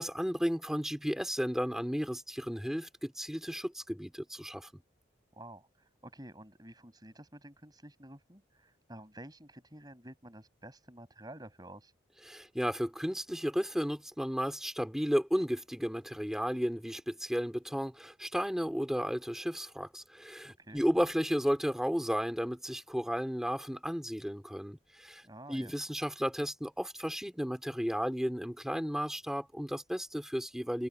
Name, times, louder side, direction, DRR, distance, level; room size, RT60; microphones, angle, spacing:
voice 1, 0.0-4.7 12.3-25.2 25.5-30.9, equal, ahead, 3.0 m, -33 dB
voice 2, 5.3-11.9 20.5-20.8 25.2-25.7, right 1 dB, 20° right, 6.8 m, -51 dB
head